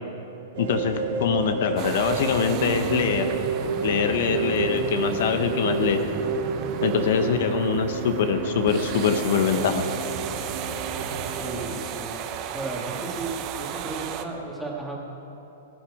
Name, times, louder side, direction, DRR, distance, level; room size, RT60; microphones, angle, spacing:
sound 1, 0.5-11.7, right 4 dB, 60° right, 2.5 m, -30 dB
voice 1, 0.6-3.3 3.8-6.0 6.8-9.8, left 6 dB, 65° left, 7 dB, 1.0 m, -23 dB
sound 2, 1.8-14.2, right 9 dB, 35° right, 0.8 m, -35 dB
voice 2, 11.3-12.2 12.5-15.0, right 3 dB, ahead, -3 dB, 2.0 m, -34 dB
20.0 x 9.1 x 4.9 m, 3.0 s
hypercardioid pair, 145°, 0 cm